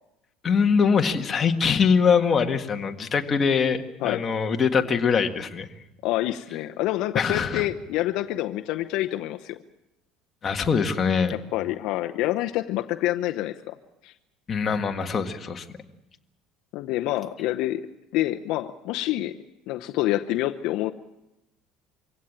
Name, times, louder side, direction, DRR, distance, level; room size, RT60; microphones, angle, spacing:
voice 1, 0.4-5.7 7.2-7.7 10.4-11.4 14.5-15.8, left 6 dB, 25° left, 4 dB, 1.8 m, -23 dB
voice 2, 6.0-9.6 11.5-13.8 14.0-14.1 16.7-17.8 18.1-19.4 19.7-20.9, left 15 dB, 65° left, 7 dB, 0.8 m, -27 dB
24.5 x 16.5 x 8.9 m, 0.94 s
cardioid pair, 135°, 0 cm